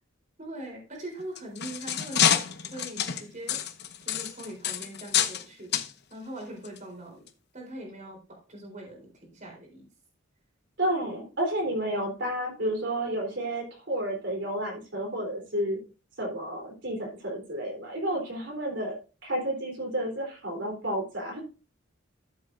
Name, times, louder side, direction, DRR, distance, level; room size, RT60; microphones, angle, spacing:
voice 1, 0.4-2.4 2.7-3.6 4.0-5.8 6.1-7.2 7.5-9.9, right 1 dB, 40° right, 0 dB, 3.9 m, -42 dB
sound 1, 1.2-5.4 5.7-5.9 6.6-6.8 7.3-7.4, left 9 dB, 55° left, 0.9 m, -27 dB
voice 2, 10.8-15.8 16.2-21.4, right 1 dB, 65° right, 0 dB, 3.8 m, -31 dB
13.5 x 7.8 x 2.6 m, 0.33 s
head